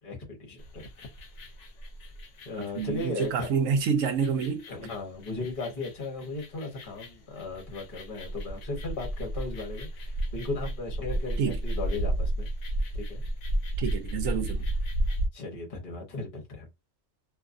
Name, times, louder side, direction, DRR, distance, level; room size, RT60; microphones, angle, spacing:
voice 1, 0.0-0.9 2.4-3.5 4.7-12.5 12.9-13.2 15.3-16.7, left 3 dB, 45° left, 1.0 m, -36 dB
sound 1, 0.6-15.3, right 1 dB, 70° left, 1.0 m, -33 dB
voice 2, 2.8-4.6 11.4-11.5 13.8-14.6, right 6 dB, 80° right, 1.0 m, -27 dB
2.6 x 2.5 x 2.4 m
omnidirectional pair, 1.4 m